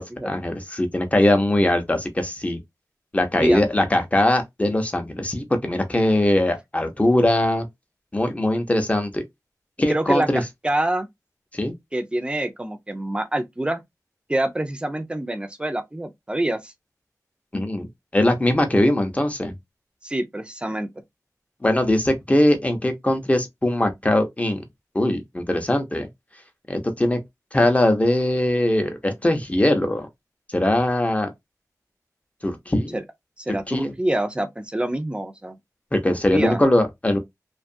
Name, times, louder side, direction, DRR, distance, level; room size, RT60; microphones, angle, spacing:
voice 1, 0.3-2.6 3.1-7.7 8.1-9.2 9.8-10.4 11.5-11.7 17.5-19.5 21.6-24.6 24.9-26.1 26.7-27.2 27.5-30.1 30.5-31.3 32.4-33.0 33.5-33.9 35.9-37.2, left 1 dB, 20° left, 0.7 m, -21 dB
voice 2, 9.9-11.1 11.9-13.8 14.3-16.7 20.0-20.9 32.9-33.0 33.4-35.6 36.1-36.6, right 1 dB, 15° right, 0.5 m, -26 dB
2.6 x 2.4 x 2.5 m
wide cardioid pair, 75°, 7 cm